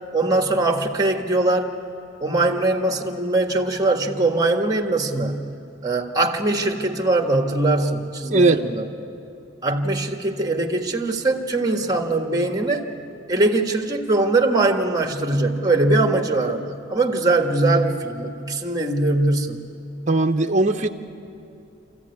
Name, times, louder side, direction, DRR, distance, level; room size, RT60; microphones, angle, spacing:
voice 1, 0.1-1.7 2.2-5.5 5.8-8.9 9.6-12.9 13.3-19.7, right 2 dB, 20° right, 4 dB, 1.5 m, -21 dB
voice 2, 8.3-8.6 20.1-20.9, right 2 dB, 40° right, 4 dB, 0.9 m, -18 dB
27.5 x 14.5 x 9.6 m, 2.8 s
head